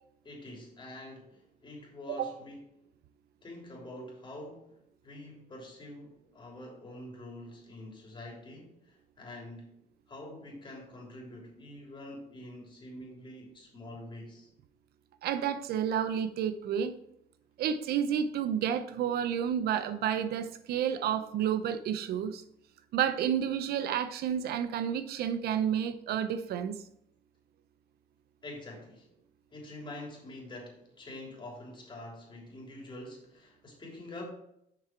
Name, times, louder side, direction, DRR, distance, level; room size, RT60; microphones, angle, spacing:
voice 1, 0.2-2.6 3.4-4.7 5.0-9.7 10.1-14.5 28.4-29.1 29.5-34.2, left 1 dB, 30° left, -1 dB, 3.4 m, -46 dB
voice 2, 15.2-17.0 17.6-22.4 22.9-26.8, right 9 dB, 70° right, 11 dB, 0.7 m, -30 dB
7.4 x 6.0 x 4.5 m, 0.76 s
cardioid pair, 110°, 17 cm